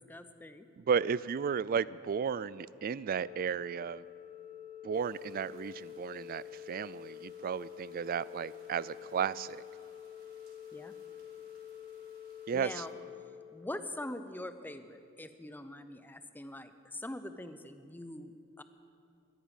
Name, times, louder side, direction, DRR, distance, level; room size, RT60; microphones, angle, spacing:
voice 1, 0.0-0.7 10.7-11.0 12.5-12.9 13.5-18.6, left 1 dB, 10° left, 10 dB, 0.6 m, -43 dB
voice 2, 0.8-4.0 4.8-9.6 12.5-12.8, right 7 dB, 40° right, 19 dB, 0.3 m, -34 dB
Organ, 3.0-14.1, left 10 dB, 25° left, 2.7 m, -48 dB
sound 1, 4.9-12.9, right 3 dB, 90° right, 3.2 m, -67 dB
14.0 x 10.0 x 9.9 m, 2.5 s
head